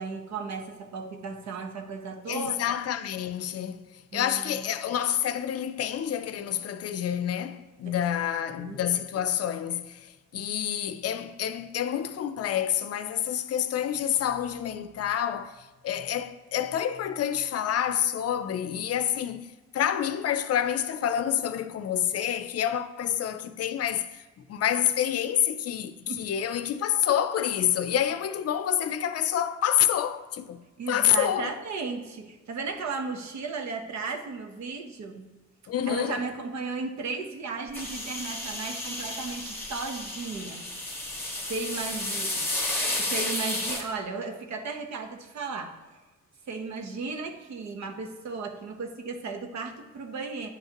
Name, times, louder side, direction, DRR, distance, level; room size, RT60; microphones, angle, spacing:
voice 1, 0.0-2.6 4.1-4.7 7.8-7.9 8.4-8.8 26.1-26.3 30.8-35.3 35.9-40.7 41.1-42.5 43.0-45.8 46.5-50.5, right 4 dB, 65° right, 1.0 m, -35 dB
voice 2, 2.3-3.9 4.1-24.2 24.5-30.6 30.9-31.5 35.7-36.2, left 10 dB, 55° left, 0.5 m, -28 dB
sound 1, 37.7-43.8, left 1 dB, 5° left, 1.7 m, -32 dB
9.5 x 5.5 x 2.9 m
cardioid pair, 90°, 30 cm